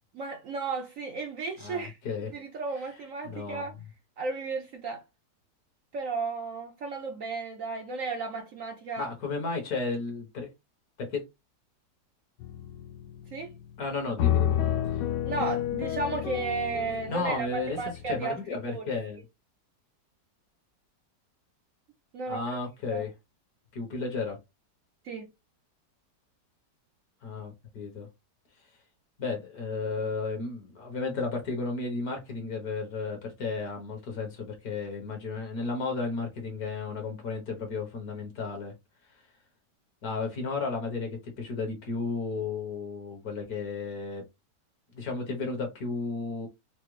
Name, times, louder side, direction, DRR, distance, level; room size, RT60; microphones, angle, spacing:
voice 1, 0.1-2.0 2.3-3.7 4.2-5.0 5.9-9.1 13.3-13.5 15.2-18.4 18.7-18.9 22.1-22.4 22.9-23.0 25.0-25.3, right 4 dB, 65° right, 0.8 m, -34 dB
voice 2, 1.6-2.3 2.7-3.0 3.2-3.7 9.0-10.5 11.0-11.2 13.8-14.6 14.9-15.0 17.1-19.2 22.3-23.1 23.7-24.4 27.2-28.1 29.2-38.7 40.0-44.2 44.9-46.5, left 4 dB, 60° left, 1.5 m, -33 dB
sound 1, 12.4-13.3 14.2-18.2, left 11 dB, 75° left, 1.1 m, -29 dB
4.9 x 2.0 x 3.1 m
omnidirectional pair, 1.9 m